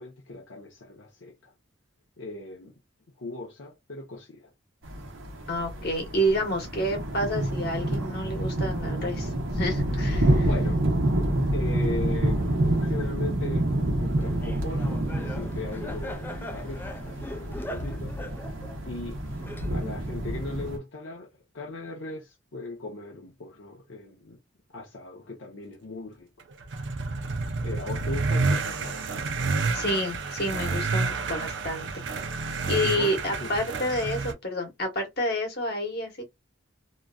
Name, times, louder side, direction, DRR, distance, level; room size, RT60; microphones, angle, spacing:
voice 1, 0.0-1.5 2.2-2.7 3.2-4.5 10.4-10.8 11.5-12.4 12.8-13.7 14.0-18.2 18.9-19.2 19.7-24.4 24.7-26.3 27.6-29.1 32.6-33.1 33.4-33.5, left 2 dB, 80° left, 0.7 m, -38 dB
sound 1, 4.8-20.8, right 1 dB, 85° right, 1.0 m, -28 dB
voice 2, 5.5-10.5 29.7-32.0 32.6-36.2, equal, 55° left, 1.3 m, -29 dB
Laughter, 14.2-20.1, left 1 dB, 10° left, 0.4 m, -41 dB
sound 2, 26.5-34.3, right 4 dB, 70° right, 0.6 m, -29 dB
2.9 x 2.4 x 2.2 m
head